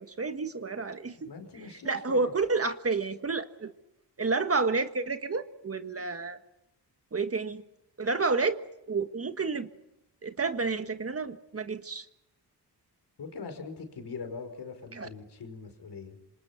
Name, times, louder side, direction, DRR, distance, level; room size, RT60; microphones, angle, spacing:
voice 1, 0.0-1.3 1.8-3.7 4.2-6.4 7.1-7.6 8.0-8.6 8.9-9.7 10.2-12.0 14.9-15.1, right 4 dB, 35° right, 8 dB, 1.5 m, -30 dB
voice 2, 1.1-2.3 13.2-16.2, left 4 dB, 75° left, 7 dB, 5.2 m, -42 dB
27.0 x 26.5 x 5.9 m, 0.87 s
wide cardioid pair, 110°, 40 cm